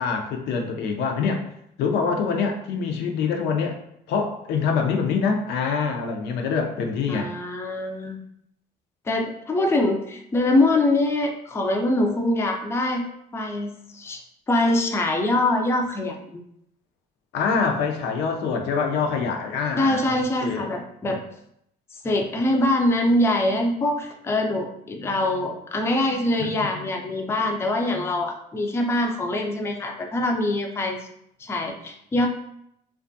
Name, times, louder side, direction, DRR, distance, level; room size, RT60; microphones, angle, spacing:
voice 1, 0.0-1.4 1.8-3.7 4.1-7.3 17.3-20.7 26.4-26.7, left 5 dB, 80° left, 3 dB, 0.4 m, -25 dB
voice 2, 7.1-8.2 9.1-13.1 13.3-14.2 14.5-16.4 19.8-21.2 22.0-31.0 31.4-32.3, left 1 dB, 15° left, 3 dB, 0.3 m, -23 dB
2.4 x 2.3 x 2.5 m, 0.74 s
cardioid pair, 110°, 17 cm